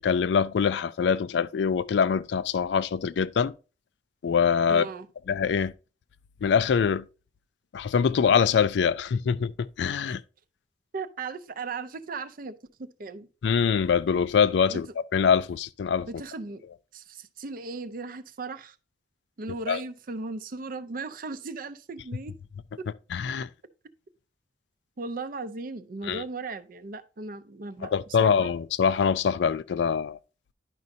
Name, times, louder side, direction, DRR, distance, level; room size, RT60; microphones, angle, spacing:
voice 1, 0.0-3.5 4.2-4.9 5.3-5.7 6.4-7.1 7.7-10.2 13.4-14.9 15.1-16.1 19.7-19.8 23.1-23.5 26.0-26.2 27.8-30.2, left 6 dB, 70° left, 0.4 m, -24 dB
voice 2, 4.7-5.1 10.0-10.2 10.9-13.3 14.7-14.8 16.1-16.6 16.9-18.8 19.4-22.3 22.8-22.9 25.0-28.5, right 3 dB, 50° right, 0.5 m, -37 dB
11.0 x 5.2 x 2.7 m
head